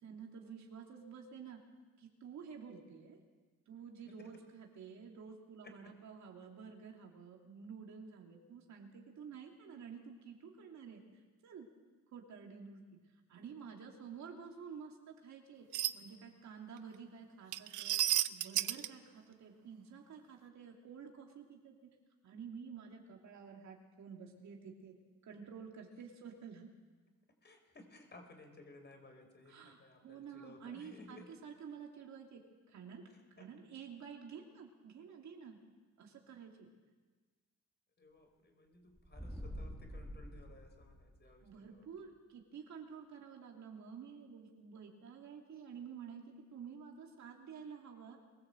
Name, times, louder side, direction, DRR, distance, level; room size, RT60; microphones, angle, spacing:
voice 1, 0.0-1.6 2.0-3.2 3.7-11.0 11.4-11.7 12.1-12.8 13.3-15.7 15.9-18.0 18.3-21.9 22.2-24.9 25.2-26.7 29.5-29.8 30.0-32.4 32.7-33.0 33.4-35.6 36.0-36.7 41.4-48.2, right 6 dB, 65° right, 1 dB, 2.9 m, -51 dB
voice 2, 5.6-6.0 27.4-31.3 33.1-33.5 38.0-41.9, left 2 dB, 35° left, 5 dB, 4.6 m, -58 dB
sound 1, 15.7-15.9 17.5-18.9, right 14 dB, 85° right, 0.7 m, -32 dB
sound 2, 39.0-41.4, equal, ahead, 2.3 m, -47 dB
22.5 x 15.0 x 7.9 m, 1.4 s
cardioid pair, 90°, 30 cm